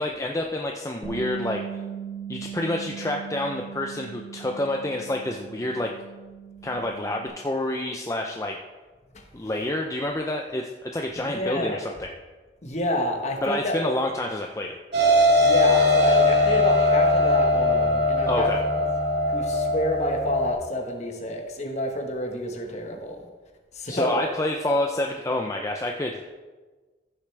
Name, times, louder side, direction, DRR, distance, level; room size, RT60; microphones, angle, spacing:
voice 1, 0.0-1.8 2.3-5.9 6.6-8.6 9.3-12.1 13.4-14.8 18.3-18.6 23.9-26.2, left 1 dB, 15° left, 2 dB, 0.5 m, -28 dB
Bass guitar, 1.0-7.3, right 8 dB, 40° right, 2.6 m, -38 dB
voice 2, 11.3-11.8 12.6-13.9 15.4-18.5 19.3-23.3 23.7-24.2, left 1 dB, 40° left, 3 dB, 1.3 m, -29 dB
sound 1, 14.9-20.5, left 2 dB, 70° right, 2.4 m, -20 dB
15.0 x 6.8 x 3.3 m, 1.3 s
head